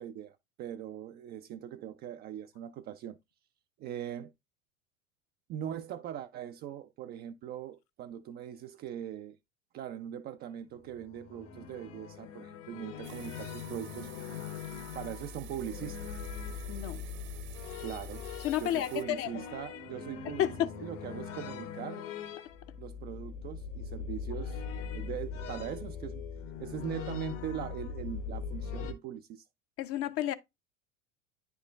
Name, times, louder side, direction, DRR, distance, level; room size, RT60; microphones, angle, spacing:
voice 1, 0.0-3.2 3.8-4.3 5.5-9.4 9.7-14.1 14.9-16.1 17.8-18.3 18.6-22.1 22.8-24.6 24.9-26.2 26.6-29.5, right 10 dB, 25° right, 0.3 m, -41 dB
sound 1, 10.7-28.9, left 6 dB, 65° left, 1.4 m, -41 dB
sound 2, 13.0-19.0, right 12 dB, 45° right, 0.8 m, -52 dB
voice 2, 16.7-17.0 18.4-19.4 20.4-20.7 29.8-30.3, left 12 dB, 35° left, 0.6 m, -31 dB
10.0 x 4.5 x 2.2 m
figure-of-eight pair, 75°, 40 cm